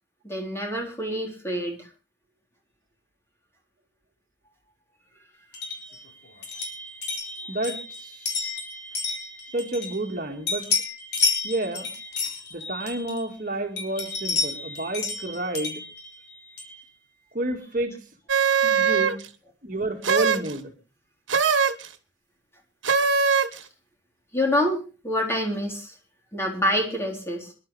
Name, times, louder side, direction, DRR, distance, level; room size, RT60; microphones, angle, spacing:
voice 1, 0.2-1.9 18.8-18.9 24.3-25.9 26.3-27.5, left 1 dB, 15° left, 0 dB, 4.0 m, -27 dB
sound 1, 5.5-10.2 10.5-13.4 13.8-16.8, left 4 dB, 60° left, 4.2 m, -31 dB
voice 2, 7.5-8.5 9.5-10.7 11.4-11.9 12.5-15.8 17.3-17.9 18.6-19.2 19.6-20.7, right 2 dB, 45° right, 3 dB, 1.9 m, -30 dB
sound 2, 18.3-19.3 20.0-20.5 21.3-21.9 22.8-23.6, right 6 dB, 90° right, 1.4 m, -21 dB
26.5 x 11.5 x 3.3 m, 0.34 s
head